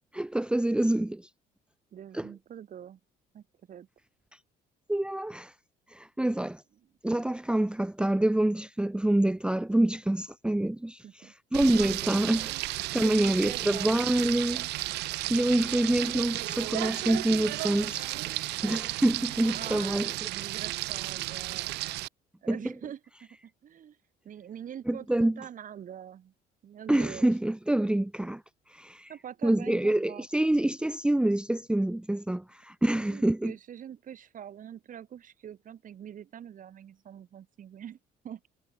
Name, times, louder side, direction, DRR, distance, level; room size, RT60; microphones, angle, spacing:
voice 1, 0.1-1.3 2.1-2.3 4.9-5.5 5.9-6.6 7.0-12.6 12.9-14.7 15.3-20.1 22.5-22.6 24.9-25.4 26.9-28.4 28.7-29.1 29.4-33.5, right 1 dB, 5° right, 0.8 m, -26 dB
voice 2, 1.9-3.0 3.3-3.9 11.0-11.3 13.0-14.0 19.5-21.8 22.4-24.0 24.2-26.3 26.6-27.3 29.1-30.3 33.0-38.0 38.2-38.4, right 9 dB, 50° right, 7.6 m, -44 dB
Frying (food), 11.5-22.1, right 19 dB, 85° right, 1.0 m, -33 dB
cardioid pair, 110°, 17 cm